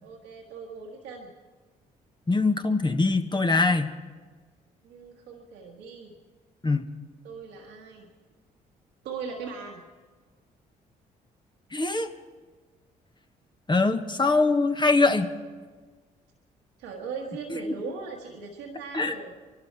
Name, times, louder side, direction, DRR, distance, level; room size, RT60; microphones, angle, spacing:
voice 1, 0.0-1.3 4.8-6.1 7.2-8.1 9.0-9.8 16.8-19.3, right 5 dB, 85° right, -1 dB, 1.5 m, -39 dB
voice 2, 2.3-3.9 6.6-6.8 11.7-12.1 13.7-15.3 17.5-17.7 18.9-19.1, left 3 dB, 25° left, 7 dB, 1.3 m, -23 dB
23.5 x 12.0 x 4.7 m, 1.4 s
hypercardioid pair, 55°, 18 cm